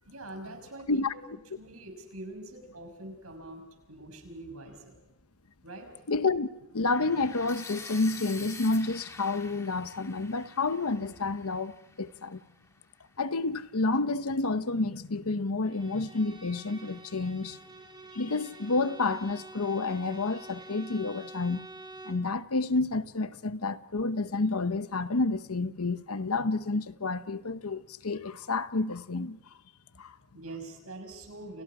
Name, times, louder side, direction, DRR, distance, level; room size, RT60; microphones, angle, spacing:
voice 1, 0.0-5.0 5.6-5.9 30.3-31.6, right 2 dB, 75° right, 6.2 m, -44 dB
voice 2, 6.1-12.4 13.2-17.6 18.1-21.7 22.1-29.4 30.0-30.1, left 3 dB, 80° left, 1.0 m, -29 dB
sound 1, 6.9-12.9, left 3 dB, 15° left, 1.9 m, -47 dB
Bowed string instrument, 15.6-22.3, right 2 dB, 20° right, 3.5 m, -48 dB
30.0 x 29.5 x 4.9 m
head